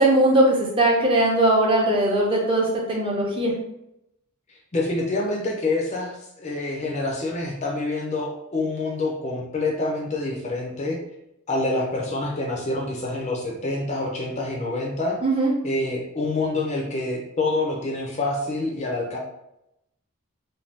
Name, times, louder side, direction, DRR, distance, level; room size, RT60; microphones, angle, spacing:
voice 1, 0.0-3.5 15.2-15.5, right 1 dB, 25° right, -2 dB, 0.6 m, -20 dB
voice 2, 4.5-11.0 11.5-15.2 15.6-19.2, left 2 dB, 30° left, 0 dB, 0.5 m, -27 dB
2.6 x 2.2 x 3.2 m, 0.83 s
head